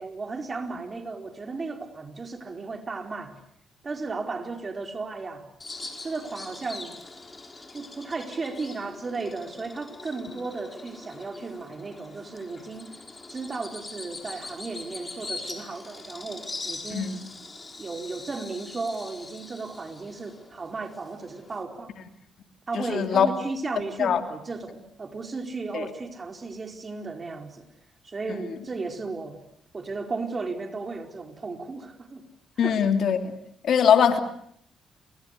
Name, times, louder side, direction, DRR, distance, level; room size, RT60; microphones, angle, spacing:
voice 1, 0.0-3.4 3.8-5.5 6.0-6.9 7.7-13.0 13.3-17.1 17.8-22.0 22.7-27.7 28.0-29.4 29.7-32.2 32.6-32.8, right 3 dB, 35° right, 5 dB, 4.5 m, -35 dB
Bird vocalization bird call bird song, 5.6-21.6, left 3 dB, 30° left, 5.1 m, -42 dB
voice 2, 22.7-23.3 24.0-24.2 25.7-25.9 32.6-33.3 33.6-34.2, left 8 dB, 65° left, 7 dB, 3.0 m, -21 dB
29.5 x 25.0 x 6.8 m, 0.68 s
supercardioid pair, 60°, 0 cm